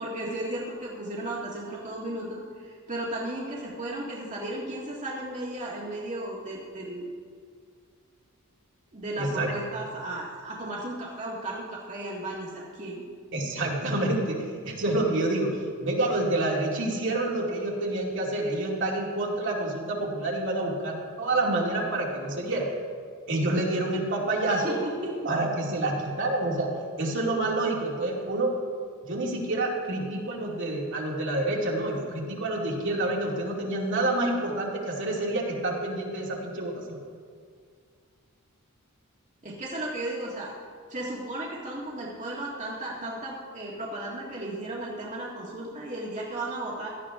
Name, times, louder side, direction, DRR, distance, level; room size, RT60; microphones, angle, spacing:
voice 1, 0.0-7.1 8.9-13.0 24.5-25.3 39.4-40.5 40.9-46.9, right 1 dB, 35° right, -4 dB, 1.9 m, -35 dB
voice 2, 9.2-9.5 13.3-22.7 23.3-24.8 25.2-26.7 27.0-28.5 29.0-37.0, right 2 dB, 60° right, -2 dB, 2.4 m, -28 dB
17.0 x 13.0 x 3.7 m, 2.1 s
head